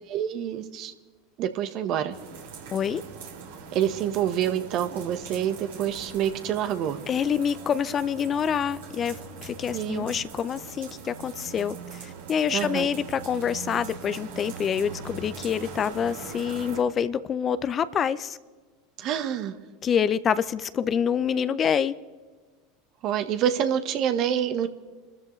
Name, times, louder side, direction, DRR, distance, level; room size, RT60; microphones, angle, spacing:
voice 1, 0.1-0.9 1.4-2.1 3.7-7.0 9.7-10.0 12.5-12.9 19.0-19.6 23.0-24.7, right 9 dB, 50° right, 1.2 m, -27 dB
sound 1, 2.1-16.8, right 5 dB, 75° right, 3.2 m, -41 dB
voice 2, 2.7-3.0 7.1-18.4 19.8-21.9, left 7 dB, 35° left, 0.6 m, -26 dB
27.5 x 13.5 x 3.2 m
hypercardioid pair, 80°, 0 cm